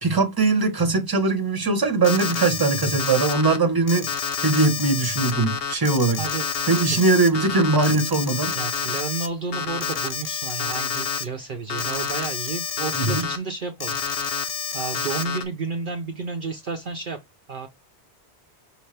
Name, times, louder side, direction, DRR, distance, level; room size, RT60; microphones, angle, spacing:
voice 1, 0.0-4.1 4.4-6.2 6.7-8.5 12.9-13.3, right 3 dB, 20° right, 1.1 m, -21 dB
Alarm, 2.0-3.6 3.9-9.3 9.5-11.2 11.7-13.4 13.8-15.4, left 6 dB, 60° left, 1.0 m, -28 dB
voice 2, 8.5-14.0 14.3-17.2 17.5-17.7, right 4 dB, 55° right, 0.9 m, -31 dB
5.6 x 2.7 x 3.3 m
omnidirectional pair, 1.1 m